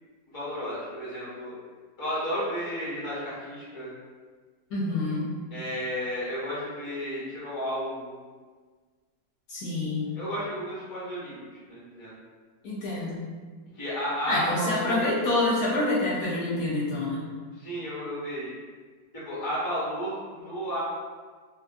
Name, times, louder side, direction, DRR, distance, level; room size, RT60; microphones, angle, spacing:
voice 1, 0.3-1.5 2.0-3.9 5.5-8.2 10.1-12.1 13.7-15.0 17.6-18.5 19.1-20.8, equal, 20° left, -9 dB, 0.6 m, -33 dB
voice 2, 4.7-5.3 9.5-10.1 12.6-13.3 14.3-17.2, left 2 dB, 65° left, -7 dB, 1.0 m, -27 dB
2.8 x 2.4 x 2.5 m, 1.5 s
omnidirectional pair, 1.9 m